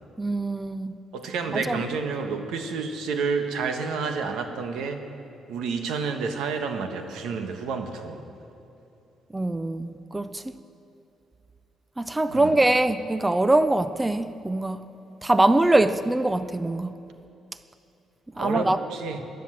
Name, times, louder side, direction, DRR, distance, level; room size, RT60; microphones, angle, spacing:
voice 1, 0.2-0.9 1.5-1.8 9.3-10.4 12.0-14.8 15.2-16.9 18.4-18.8, right 2 dB, 15° right, 0.5 m, -23 dB
voice 2, 1.1-5.0 5.5-8.2 12.3-12.6 18.3-19.2, right 5 dB, 85° right, 1.2 m, -29 dB
13.0 x 10.5 x 7.5 m
cardioid pair, 90°, 0 cm